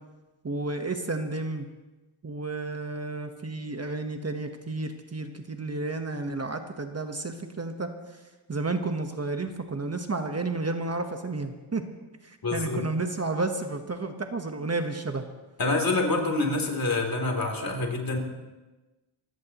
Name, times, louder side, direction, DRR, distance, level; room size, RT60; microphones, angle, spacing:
voice 1, 0.4-1.7 2.2-7.9 8.5-11.8 12.2-15.2, right 3 dB, 30° right, 5 dB, 1.2 m, -31 dB
voice 2, 12.4-12.8 15.6-18.2, left 2 dB, 45° left, 2 dB, 3.2 m, -26 dB
27.0 x 16.5 x 3.0 m, 1.1 s
wide cardioid pair, 105°, 47 cm